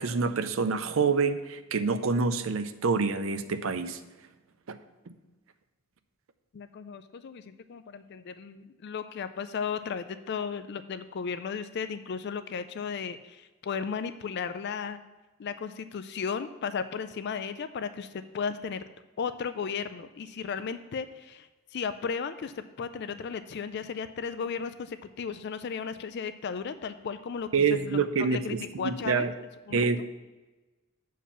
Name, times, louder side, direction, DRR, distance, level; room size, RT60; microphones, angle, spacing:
voice 1, 0.0-4.0 4.7-4.8 27.5-29.3 29.7-30.0, right 5 dB, 70° right, 11 dB, 0.6 m, -27 dB
voice 2, 6.5-15.0 15.4-18.8 19.2-29.3 29.7-30.0, left 6 dB, 55° left, 11 dB, 0.4 m, -35 dB
7.3 x 4.6 x 7.1 m, 1.2 s
head